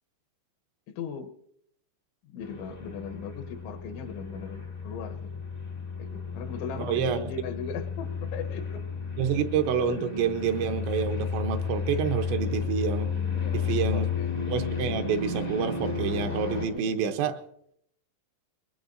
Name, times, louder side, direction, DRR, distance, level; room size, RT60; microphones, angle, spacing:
voice 1, 0.9-1.3 2.3-5.3 6.0-8.9 9.3-9.4 12.4-12.7 13.3-14.4 16.7-17.0, left 6 dB, 80° left, 6 dB, 3.3 m, -39 dB
sound 1, 2.4-16.7, left 6 dB, 40° left, 0.5 m, -33 dB
voice 2, 6.8-7.3 9.2-13.1 13.5-14.1 14.5-17.4, right 7 dB, 80° right, 6 dB, 3.0 m, -28 dB
22.5 x 21.0 x 2.6 m, 0.71 s
omnidirectional pair, 5.4 m